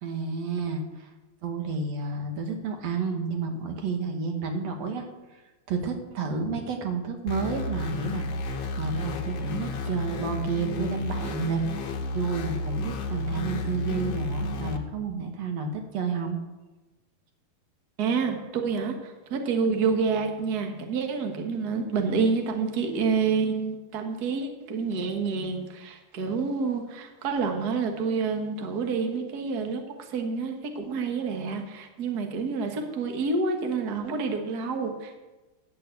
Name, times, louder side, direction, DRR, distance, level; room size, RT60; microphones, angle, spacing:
voice 1, 0.0-1.1 1.4-5.1 5.3-11.9 12.1-16.4, right 4 dB, 60° right, 4 dB, 2.2 m, -31 dB
sound 1, 7.3-14.8, left 2 dB, 60° left, 1.9 m, -32 dB
voice 2, 18.0-35.2, right 5 dB, 80° right, 4 dB, 0.8 m, -28 dB
10.5 x 8.4 x 8.1 m, 1.1 s
omnidirectional pair, 4.0 m